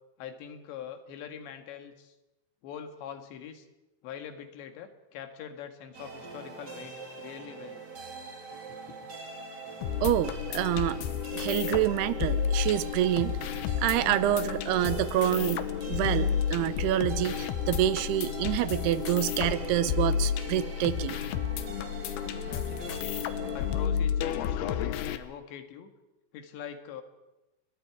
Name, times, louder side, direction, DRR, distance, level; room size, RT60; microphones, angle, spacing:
voice 1, 0.2-2.1 2.6-3.7 4.0-7.8 8.9-9.0 22.5-23.3 23.5-25.9 26.3-27.0, left 8 dB, 90° left, 7 dB, 4.0 m, -43 dB
sound 1, 5.9-23.9, right 4 dB, 30° right, 2.5 m, -43 dB
sound 2, 9.8-25.2, left 9 dB, 75° left, 2.9 m, -31 dB
voice 2, 10.0-11.0 11.3-13.4 13.8-21.1, right 13 dB, 75° right, 14 dB, 2.7 m, -27 dB
30.0 x 22.0 x 4.8 m, 1.0 s
omnidirectional pair, 4.9 m